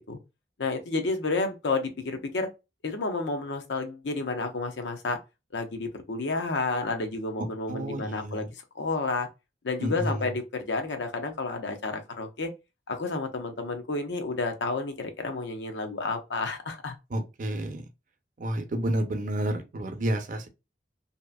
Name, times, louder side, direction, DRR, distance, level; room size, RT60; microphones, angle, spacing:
voice 1, 0.6-2.5 2.8-5.2 5.5-8.5 8.8-9.3 9.6-12.5 12.9-17.0, left 3 dB, 80° left, 0.6 m, -30 dB
voice 2, 7.7-8.5 9.8-10.4 17.1-17.8 18.4-20.5, right 1 dB, 50° right, 0.6 m, -30 dB
2.7 x 2.4 x 2.2 m
head